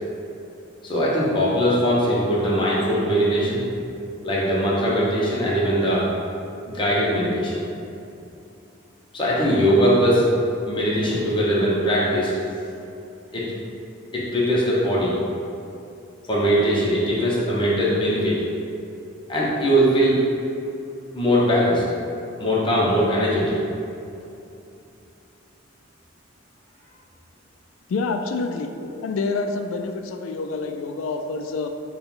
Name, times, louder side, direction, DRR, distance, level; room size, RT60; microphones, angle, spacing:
voice 1, 0.8-3.6 4.2-6.1 6.7-7.6 9.1-10.3 10.7-12.3 13.3-13.5 14.1-15.1 16.3-18.4 19.3-20.2 21.1-21.8 22.4-23.6, equal, 25° left, -6 dB, 0.7 m, -20 dB
voice 2, 27.9-28.7 29.0-31.7, left 3 dB, 80° left, 6 dB, 0.3 m, -27 dB
4.3 x 2.2 x 3.7 m, 2.6 s
head